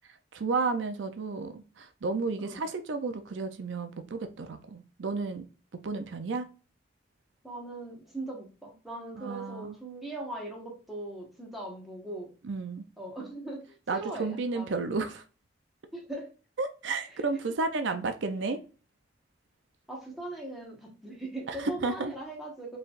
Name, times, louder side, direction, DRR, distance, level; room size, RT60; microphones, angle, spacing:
voice 1, 0.3-5.4 5.8-6.5 9.2-9.8 12.4-12.9 13.9-15.2 16.6-18.6 21.5-22.1, right 3 dB, 85° right, 0.5 m, -32 dB
voice 2, 7.4-12.3 13.0-14.7 15.9-16.3 19.9-22.8, right 2 dB, ahead, 1.3 m, -40 dB
4.5 x 3.3 x 2.5 m
head